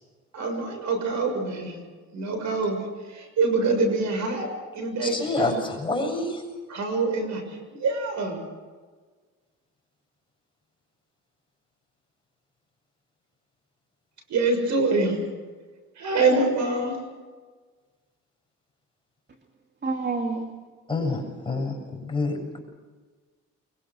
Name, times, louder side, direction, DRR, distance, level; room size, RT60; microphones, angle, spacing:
voice 1, 0.3-1.8 2.1-4.5 4.7-5.6 6.7-7.4 7.8-8.5 14.3-15.2 16.0-17.0, right 3 dB, 70° right, 6.8 m, -25 dB
voice 2, 5.0-6.4 20.9-21.7 22.0-22.6, left 2 dB, 15° left, 7.6 m, -27 dB
voice 3, 19.8-20.5, right 3 dB, 35° right, 2.6 m, -28 dB
25.0 x 22.5 x 6.4 m
cardioid pair, 90°, 30 cm